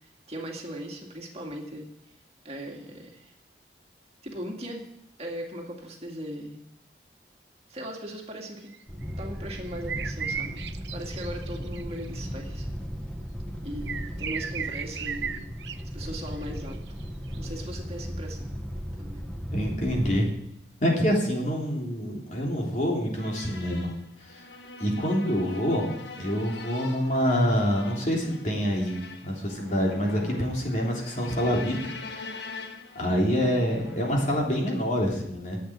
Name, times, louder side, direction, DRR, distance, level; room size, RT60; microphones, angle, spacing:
voice 1, 0.3-1.9 2.4-3.3 4.2-4.9 5.2-6.6 7.7-8.7 9.2-10.6 10.9-12.7 13.6-15.5 15.9-16.9 17.4-18.5 19.0-19.2 33.5-33.8, equal, 35° right, 1 dB, 2.2 m, -38 dB
sound 1, 8.7-12.1 13.9-15.8 16.1-17.4, right 7 dB, 85° right, 0.7 m, -35 dB
sound 2, 8.9-20.2, equal, 5° left, 1.5 m, -36 dB
voice 2, 19.5-20.3 20.8-23.9 24.3-24.4 24.8-25.8 26.2-29.0 29.2-31.7 32.1-32.4 32.9-35.6, equal, 45° left, -2 dB, 3.4 m, -26 dB
sound 3, 23.2-34.4, left 3 dB, 85° left, 1.4 m, -43 dB
11.5 x 8.1 x 9.9 m, 0.78 s
head